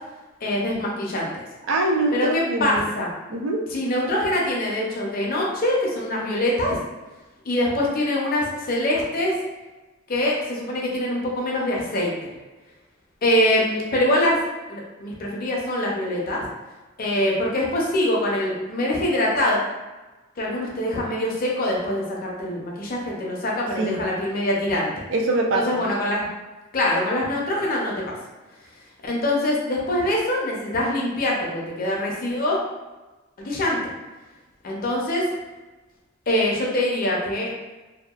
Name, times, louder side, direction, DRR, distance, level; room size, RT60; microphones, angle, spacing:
voice 1, 0.4-1.4 2.1-3.1 3.7-6.8 7.4-9.3 10.1-12.3 13.2-14.4 14.7-16.4 17.0-19.6 20.4-25.0 25.5-26.3 26.7-28.1 29.0-32.6 33.4-33.8 34.6-35.3 36.3-37.5, left 1 dB, 50° left, -3 dB, 0.6 m, -24 dB
voice 2, 1.7-2.9 3.3-3.6 23.8-24.0 25.1-25.8, right 2 dB, 70° right, 1 dB, 0.4 m, -24 dB
2.7 x 2.2 x 2.3 m, 1.2 s
head